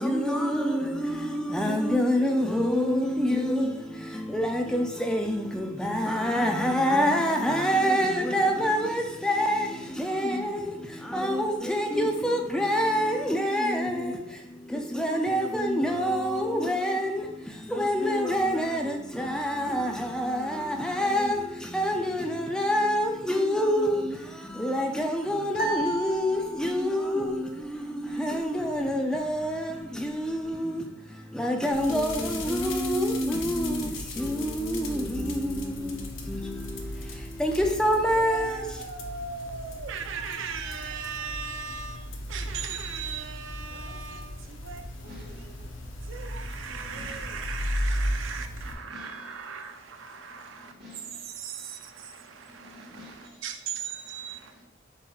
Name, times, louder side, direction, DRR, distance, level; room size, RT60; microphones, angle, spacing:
voice 1, 0.0-38.6, equal, 5° left, 0.4 m, -27 dB
sound 1, 25.5-27.0, right 1 dB, 45° left, 0.9 m, -33 dB
sound 2, 31.7-48.7, left 1 dB, 75° left, 0.6 m, -36 dB
voice 2, 38.1-45.7 46.0-50.7 51.2-54.5, right 6 dB, 75° right, 0.5 m, -38 dB
voice 3, 45.1-47.6 48.5-54.6, left 1 dB, 55° right, 1.7 m, -52 dB
7.2 x 3.1 x 2.3 m
head